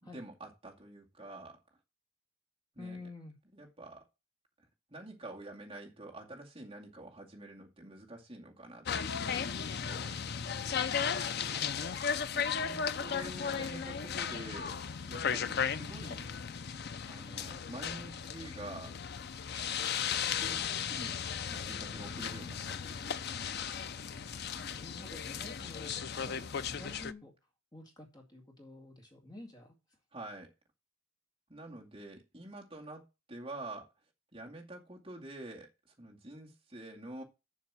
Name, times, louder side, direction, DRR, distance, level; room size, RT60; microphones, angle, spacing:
voice 1, 0.0-1.6 2.8-3.0 3.5-4.0 4.9-10.2 11.5-14.8 15.1-16.3 17.1-19.0 19.9-21.2 21.5-23.2 30.1-30.5 31.5-33.0 33.3-33.9 34.3-37.2, right 2 dB, 25° right, 2.3 m, -48 dB
voice 2, 2.8-3.4 24.3-27.3 27.7-29.7, left 2 dB, 20° left, 2.2 m, -50 dB
sound 1, 8.9-27.1, left 7 dB, 50° left, 0.5 m, -36 dB
7.4 x 6.0 x 7.4 m
head